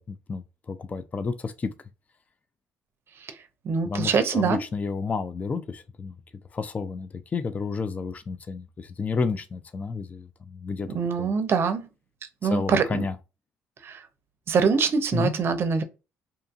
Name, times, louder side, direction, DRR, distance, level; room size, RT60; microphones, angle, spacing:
voice 1, 0.0-1.7 3.8-6.1 6.5-10.9 11.2-11.3 12.4-13.2 15.1-15.4, left 4 dB, 30° left, 0.3 m, -31 dB
voice 2, 3.6-4.6 10.9-11.8 12.4-13.0 13.8-14.0 14.5-15.8, right 5 dB, 50° right, 0.6 m, -24 dB
2.8 x 2.5 x 2.4 m
supercardioid pair, 70°, 5 cm